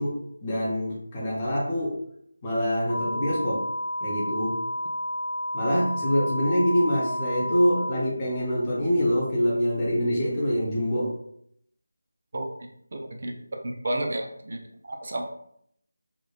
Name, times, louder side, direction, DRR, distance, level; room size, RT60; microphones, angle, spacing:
voice 1, 0.0-2.0 2.4-3.6 4.0-4.6 5.5-11.1, equal, 20° left, -5 dB, 0.6 m, -25 dB
sound 1, 2.9-7.9, left 1 dB, 10° right, 0.9 m, -31 dB
voice 2, 12.9-13.4 13.8-15.2, right 1 dB, 50° right, 2 dB, 0.4 m, -31 dB
2.9 x 2.1 x 2.3 m, 0.70 s
figure-of-eight pair, 165°, 0 cm